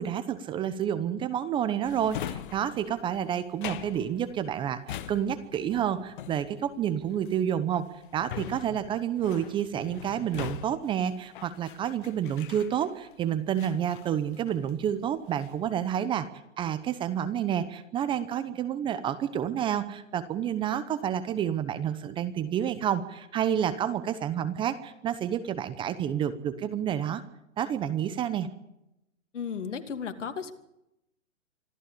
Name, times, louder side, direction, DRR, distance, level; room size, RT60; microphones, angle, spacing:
voice 1, 0.0-7.9 8.1-16.3 16.6-27.2 27.6-28.5, right 9 dB, 15° right, 13 dB, 0.9 m, -29 dB
Drawer open or close, 1.9-13.1 13.6-14.8 15.2-15.7, left 11 dB, 40° left, 1.3 m, -42 dB
voice 2, 29.3-30.5, left 6 dB, 70° left, 8 dB, 2.7 m, -34 dB
25.5 x 14.5 x 8.5 m, 0.85 s
hypercardioid pair, 140°, 38 cm